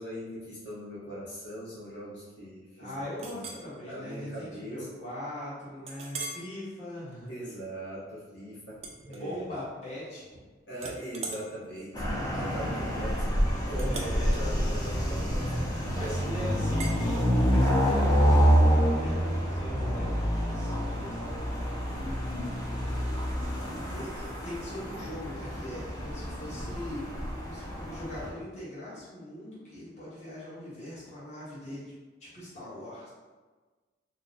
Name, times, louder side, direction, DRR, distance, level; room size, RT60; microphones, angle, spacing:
voice 1, 0.0-3.0 3.3-3.6 3.9-5.1 7.3-9.4 10.7-13.2 13.7-14.1 14.3-15.5 15.8-16.4, equal, 65° left, -9 dB, 1.0 m, -40 dB
voice 2, 2.8-7.3 9.0-10.4 13.9-14.5 15.9-21.2 21.9-22.6 23.9-27.0 27.4-31.9 32.2-33.1, left 1 dB, 35° left, -9 dB, 1.2 m, -41 dB
Chink clink, 3.2-3.7 4.2-4.4 4.8-4.9 5.9-6.5 7.0-7.3 8.8-9.7 10.0-10.4 10.8-15.9 16.8-17.0, right 3 dB, 35° right, 0.3 m, -42 dB
sound 1, 11.9-28.3, equal, 20° left, 0.5 m, -27 dB
2.8 x 2.1 x 3.8 m, 1.3 s
head